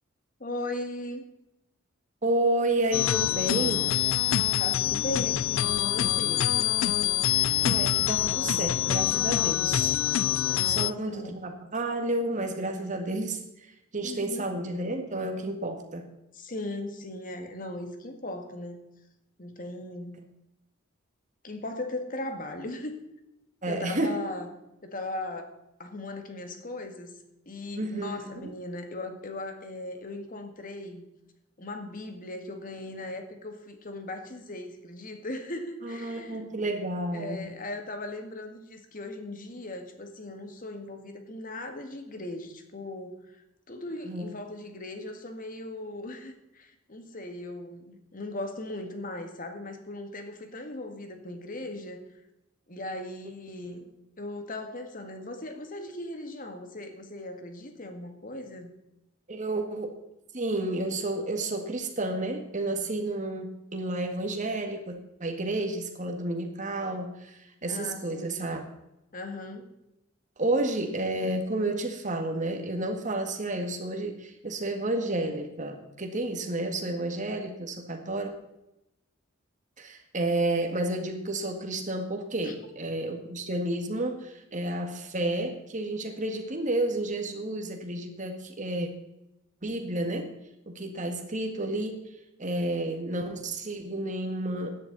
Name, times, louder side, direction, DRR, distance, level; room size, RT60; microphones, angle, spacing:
voice 1, 0.4-1.3 4.6-6.5 10.5-11.4 14.0-14.4 16.3-18.8 19.4-20.2 21.4-23.0 23.7-24.5 24.8-27.2 27.5-31.0 31.6-36.4 37.1-43.4 43.7-52.0 52.7-53.9 54.2-58.7 67.6-68.4 69.1-69.7 82.4-82.5, left 2 dB, 45° left, 6 dB, 1.9 m, -38 dB
voice 2, 2.2-3.9 7.6-10.0 10.6-16.1 23.6-24.2 27.8-28.3 35.8-37.5 44.1-44.3 53.5-53.8 59.3-59.9 60.3-68.6 70.4-78.3 79.8-88.9 89.6-90.3 90.7-92.0 92.4-94.8, right 2 dB, 40° right, 5 dB, 1.9 m, -31 dB
sound 1, 2.9-10.9, left 12 dB, 80° left, 0.4 m, -25 dB
16.0 x 10.5 x 4.1 m, 0.90 s
head